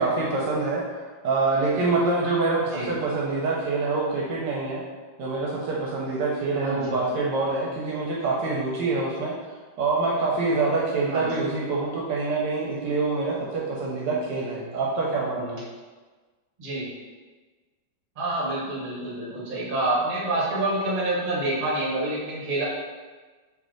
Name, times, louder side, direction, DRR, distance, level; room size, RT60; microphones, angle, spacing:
voice 1, 0.0-4.8 5.2-9.3 9.8-15.6, right 3 dB, 75° right, -4 dB, 1.2 m, -26 dB
voice 2, 6.6-7.0 11.1-11.5 16.6-16.9 18.2-22.6, right 2 dB, 35° right, -6 dB, 0.9 m, -27 dB
3.2 x 3.0 x 3.8 m, 1.4 s
omnidirectional pair, 2.1 m